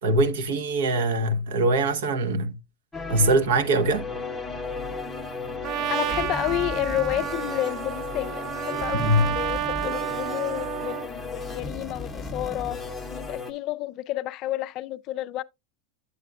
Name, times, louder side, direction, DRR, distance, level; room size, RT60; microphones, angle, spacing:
voice 1, 0.0-2.6 3.1-4.1 8.9-9.3, right 1 dB, 80° right, 0.9 m, -22 dB
sound 1, 2.9-13.5, left 3 dB, 5° left, 0.8 m, -35 dB
Trumpet, 5.6-11.1, right 10 dB, 40° right, 0.4 m, -31 dB
voice 2, 5.9-12.8 13.1-15.4, left 15 dB, 40° left, 0.3 m, -30 dB
8.2 x 7.9 x 2.3 m
supercardioid pair, 155°, 0 cm